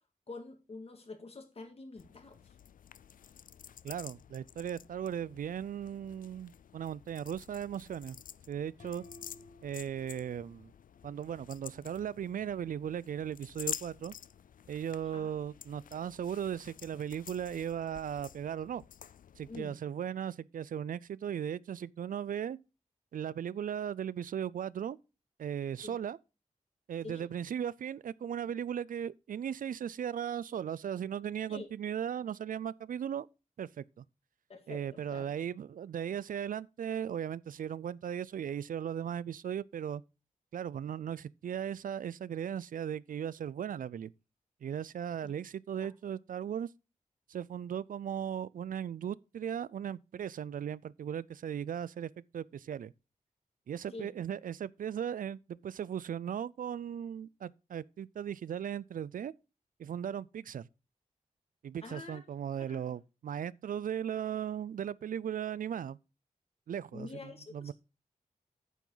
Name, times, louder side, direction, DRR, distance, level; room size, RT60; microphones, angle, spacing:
voice 1, 0.3-2.5 15.1-15.3 19.5-19.8 25.8-26.0 27.0-27.3 31.5-31.7 34.5-35.3 45.2-45.3 45.7-45.9 53.9-54.1 61.8-62.2 62.7-62.9 66.9-67.7, left 3 dB, 45° left, 2.1 m, -47 dB
sound 1, 2.0-19.6, left 9 dB, 85° left, 0.4 m, -49 dB
voice 2, 3.8-8.2 8.5-9.0 9.6-10.7 11.0-14.1 14.7-18.8 19.4-22.6 23.1-25.0 25.4-26.2 26.9-33.3 33.6-34.0 34.7-40.0 40.5-44.1 44.6-46.7 47.3-52.9 53.7-59.3 59.8-60.7 61.6-66.0 66.7-67.7, right 9 dB, 85° right, 0.4 m, -37 dB
sound 2, 8.8-11.6, left 2 dB, 65° left, 1.4 m, -57 dB
9.2 x 7.4 x 3.9 m
wide cardioid pair, 145°, 14 cm